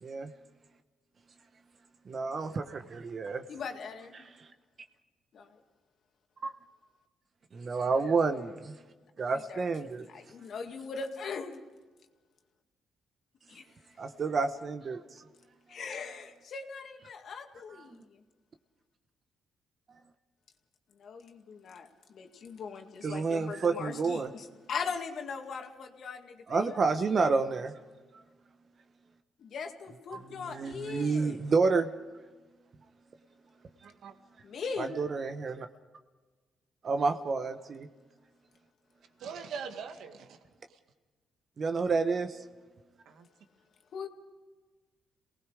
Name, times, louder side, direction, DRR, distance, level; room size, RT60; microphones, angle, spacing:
voice 1, 2.1-3.4 7.5-8.7 9.2-10.1 14.0-15.0 23.0-24.3 26.5-27.7 30.3-31.9 34.8-35.7 36.8-37.9 41.6-42.4, right 4 dB, 45° right, 7 dB, 1.0 m, -29 dB
voice 2, 3.5-4.3 5.3-5.6 9.3-9.7 10.0-11.6 13.5-13.7 15.7-18.2 21.0-27.4 29.4-31.4 34.4-34.9 43.9-44.1, left 5 dB, 60° left, 4 dB, 2.1 m, -40 dB
voice 3, 33.8-34.1 39.2-40.4 40.7-40.8 43.1-43.3, right 6 dB, 75° right, 6 dB, 1.9 m, -42 dB
28.0 x 19.0 x 4.9 m, 1.3 s
cardioid pair, 90°, 0 cm